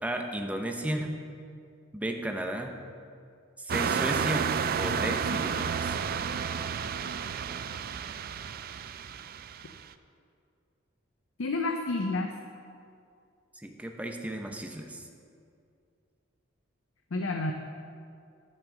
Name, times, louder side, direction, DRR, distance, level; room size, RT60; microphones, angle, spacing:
voice 1, 0.0-1.1 1.9-2.7 3.6-4.5 4.8-6.0 13.5-15.1, right 1 dB, 5° right, 3 dB, 0.7 m, -34 dB
sound 1, 3.7-9.8, right 7 dB, 45° right, 0.3 m, -31 dB
voice 2, 11.4-12.4 17.1-17.5, left 2 dB, 70° left, 4 dB, 0.6 m, -29 dB
10.5 x 6.0 x 6.3 m, 2.4 s
head